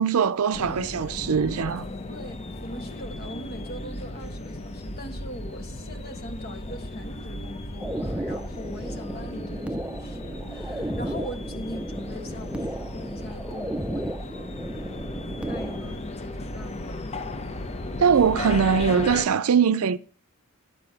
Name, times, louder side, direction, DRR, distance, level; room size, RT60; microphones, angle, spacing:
voice 1, 0.0-1.8 18.0-20.0, right 6 dB, 80° right, 0.5 m, -21 dB
sound 1, 0.5-19.3, left 1 dB, 30° left, 0.8 m, -36 dB
voice 2, 2.1-14.2 14.7-14.9 15.4-17.0, left 1 dB, 45° left, 1.5 m, -40 dB
sound 2, 7.8-16.0, right 1 dB, 5° right, 0.6 m, -34 dB
11.5 x 5.3 x 7.5 m
head